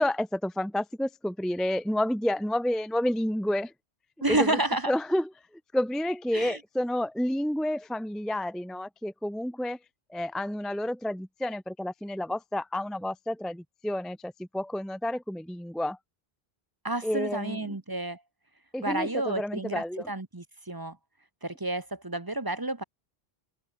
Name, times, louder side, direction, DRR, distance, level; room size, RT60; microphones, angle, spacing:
voice 1, 0.0-3.7 4.3-4.6 4.9-5.3 5.7-9.8 10.1-16.0 17.0-17.8 18.7-20.1, left 1 dB, ahead, 0.6 m, -30 dB
voice 2, 4.2-4.9 6.3-6.6 16.8-18.2 18.8-21.0 21.4-22.8, right 2 dB, 20° right, 1.1 m, -30 dB
omnidirectional pair, 1.1 m